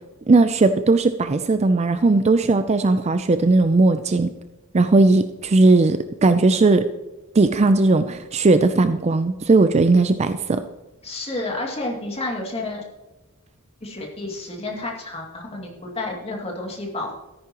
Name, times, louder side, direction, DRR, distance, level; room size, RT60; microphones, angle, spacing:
voice 1, 0.3-4.3 4.7-6.9 7.4-10.6, right 3 dB, 30° right, 10 dB, 0.4 m, -17 dB
voice 2, 11.0-12.8 13.8-17.2, left 2 dB, 25° left, 0 dB, 2.4 m, -30 dB
13.0 x 10.5 x 3.0 m, 1.1 s
head